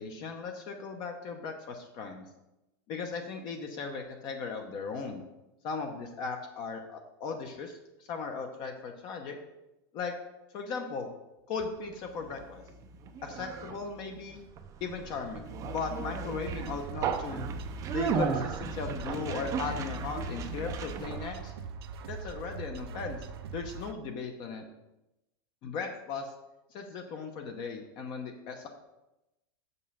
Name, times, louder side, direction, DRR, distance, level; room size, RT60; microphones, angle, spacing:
voice 1, 0.0-2.3 2.9-5.2 5.6-9.4 9.9-10.1 10.5-11.1 11.5-12.6 13.2-14.4 14.8-17.5 17.9-21.5 22.1-23.2 23.5-24.7 25.6-26.3 26.7-28.7, left 5 dB, 35° left, 4 dB, 0.8 m, -37 dB
Conversation, 11.9-21.4, right 5 dB, 25° right, 0.6 m, -36 dB
sound 1, 16.4-23.9, right 5 dB, 85° right, 0.7 m, -42 dB
7.1 x 5.4 x 5.5 m, 0.95 s
supercardioid pair, 155°, 13 cm